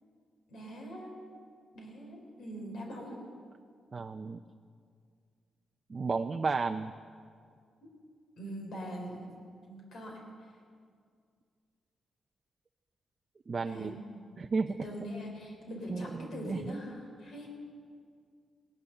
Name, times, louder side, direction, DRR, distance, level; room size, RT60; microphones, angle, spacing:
voice 1, 0.5-1.1 1.7-3.2 7.8-7.9 8.4-9.3 9.7-10.2 13.6-14.2 14.8-17.5, equal, 80° left, 0 dB, 3.6 m, -42 dB
voice 2, 3.9-4.4 5.9-6.9 13.5-14.0 14.4-14.8 15.9-16.7, right 4 dB, 35° right, 6 dB, 0.5 m, -33 dB
17.5 x 11.5 x 6.6 m, 2.1 s
cardioid pair, 120°, 0 cm